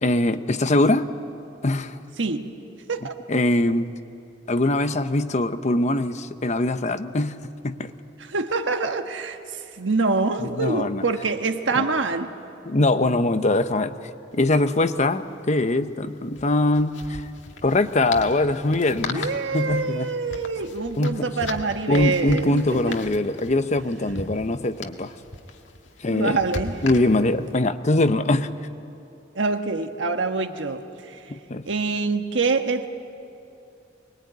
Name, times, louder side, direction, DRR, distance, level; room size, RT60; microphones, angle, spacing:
voice 1, 0.0-1.1 1.6-2.0 3.3-3.9 4.5-7.9 10.4-11.0 11.8-11.9 12.7-13.9 14.3-17.3 17.6-20.1 21.0-21.3 21.9-25.1 26.0-26.4 26.8-28.5 31.3-31.7, left 2 dB, 40° left, 10 dB, 0.9 m, -22 dB
voice 2, 2.2-2.6 2.9-3.1 8.2-12.3 19.1-23.0 26.0-26.8 29.3-31.2 31.6-32.9, right 3 dB, 90° right, 6 dB, 1.4 m, -25 dB
sound 1, 14.3-14.4 14.6-14.8 16.3-27.5, left 3 dB, 90° left, 1.7 m, -38 dB
24.0 x 21.0 x 9.4 m, 2.8 s
head